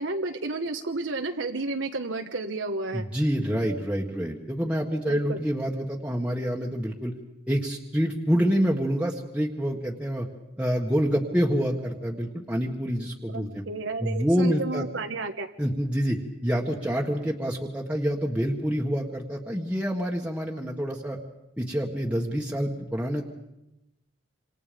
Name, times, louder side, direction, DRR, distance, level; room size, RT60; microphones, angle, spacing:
voice 1, 0.0-3.0 5.1-5.4 13.3-15.5, right 3 dB, 85° right, 4 dB, 1.4 m, -31 dB
voice 2, 2.9-7.1 7.5-10.3 10.6-13.6 14.0-14.9 15.6-16.2 16.4-21.2 21.6-23.3, equal, 5° right, -2 dB, 1.7 m, -27 dB
27.0 x 26.5 x 5.3 m, 0.91 s
head